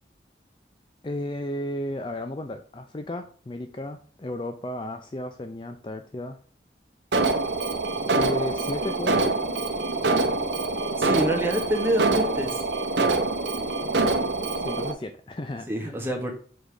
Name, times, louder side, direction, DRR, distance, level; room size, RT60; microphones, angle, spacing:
voice 1, 1.0-6.4 8.2-9.4 14.6-15.9, left 1 dB, 25° left, 7 dB, 0.4 m, -34 dB
Alarm, 7.1-14.9, right 3 dB, 85° right, 0.8 m, -25 dB
voice 2, 11.0-12.6 15.7-16.3, right 1 dB, 15° right, 1 dB, 1.2 m, -26 dB
5.1 x 4.0 x 4.8 m, 0.43 s
head